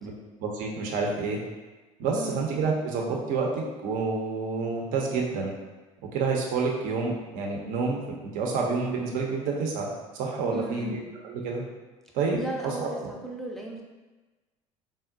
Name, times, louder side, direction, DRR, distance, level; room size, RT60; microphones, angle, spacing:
voice 1, 0.4-1.4 2.0-5.5 6.1-11.6 12.1-12.9, right 4 dB, 50° right, -1 dB, 0.6 m, -29 dB
voice 2, 10.5-11.0 12.4-13.8, right 2 dB, ahead, -2 dB, 0.5 m, -36 dB
3.7 x 2.0 x 2.5 m, 1.2 s
figure-of-eight pair, 65°, 18 cm